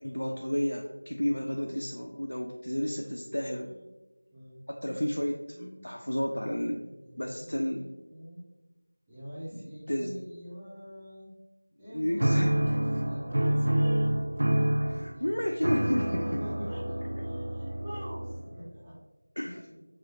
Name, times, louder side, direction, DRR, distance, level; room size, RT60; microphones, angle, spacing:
voice 1, 0.0-3.7 4.7-6.8 7.2-7.8 9.5-10.1 11.9-12.8 14.8-16.4 19.4-19.8, equal, 80° left, 1 dB, 0.5 m, -32 dB
voice 2, 4.3-5.9 6.4-8.4 9.1-11.3 11.8-15.5 16.4-18.9, equal, 5° right, -13 dB, 0.9 m, -45 dB
sound 1, 12.2-18.7, right 1 dB, 60° right, 0.4 m, -28 dB
4.9 x 3.8 x 2.8 m, 1.1 s
figure-of-eight pair, 175°, 0 cm